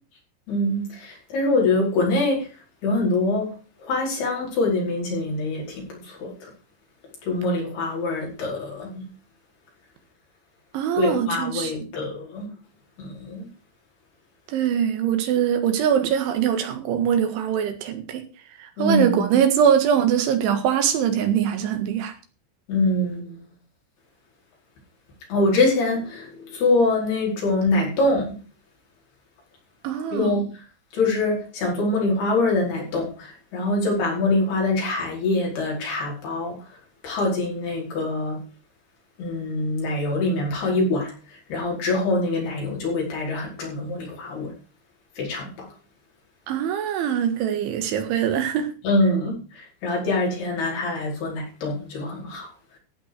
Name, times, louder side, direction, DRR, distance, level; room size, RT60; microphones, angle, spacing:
voice 1, 0.5-2.5 2.8-3.5 3.8-6.5 7.2-9.1 11.0-12.5 13.0-13.5 18.8-19.3 22.7-23.5 25.3-28.4 30.1-30.5 30.9-36.6 37.0-38.4 39.2-44.5 45.2-45.7 48.8-52.5, left 2 dB, 55° left, 6.8 m, -24 dB
voice 2, 10.7-11.7 14.5-18.2 18.6-22.1 29.8-30.3 46.5-48.7, right 8 dB, 80° right, 4.1 m, -22 dB
15.0 x 5.7 x 6.8 m
omnidirectional pair, 5.4 m